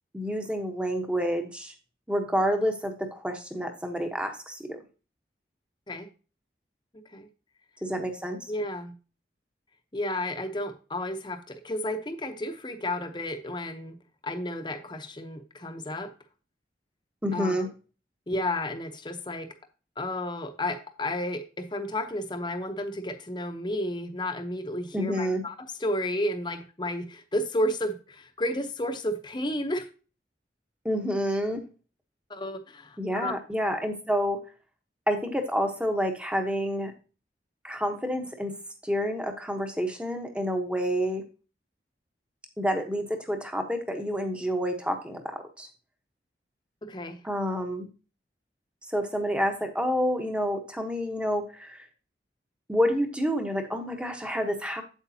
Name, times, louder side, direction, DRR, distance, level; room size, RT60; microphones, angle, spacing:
voice 1, 0.1-1.7 2.1-4.8 7.8-8.4 17.2-17.7 24.9-25.4 30.8-31.6 33.0-34.4 35.1-36.9 37.6-38.5 38.8-41.2 42.6-45.7 47.2-47.9 48.9-51.8 52.7-54.8, equal, 5° right, 5 dB, 1.0 m, -28 dB
voice 2, 8.5-8.9 9.9-13.9 14.2-16.1 17.3-17.7 18.3-19.5 20.0-25.5 25.8-29.9 32.3-33.3 46.8-47.2, left 1 dB, 25° left, 7 dB, 0.8 m, -32 dB
8.1 x 8.0 x 2.8 m, 0.34 s
head